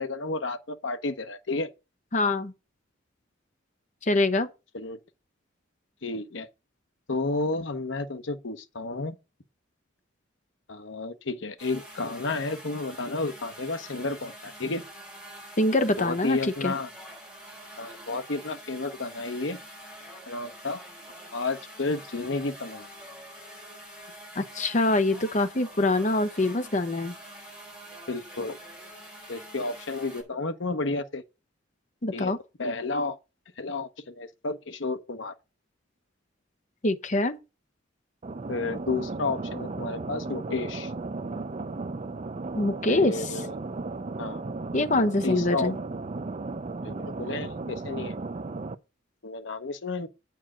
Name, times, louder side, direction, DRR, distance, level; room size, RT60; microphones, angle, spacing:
voice 1, 0.0-1.7 4.7-5.0 6.0-6.5 7.1-9.2 10.7-14.8 16.0-16.9 17.8-19.6 20.2-20.8 21.3-22.9 28.1-28.6 29.3-31.2 32.1-32.3 32.6-33.2 33.6-35.3 38.5-40.9 42.9-43.5 44.2-44.4 45.2-45.7 46.8-48.1 49.2-50.1, left 3 dB, 70° left, 1.0 m, -31 dB
voice 2, 2.1-2.5 4.0-4.5 15.6-16.7 24.4-27.1 32.0-32.4 36.8-37.4 42.6-43.3 44.7-45.8, left 2 dB, 40° left, 0.9 m, -24 dB
sound 1, 11.6-30.2, right 1 dB, 5° right, 7.2 m, -46 dB
sound 2, 38.2-48.7, right 3 dB, 35° right, 0.5 m, -35 dB
8.7 x 4.7 x 7.4 m
head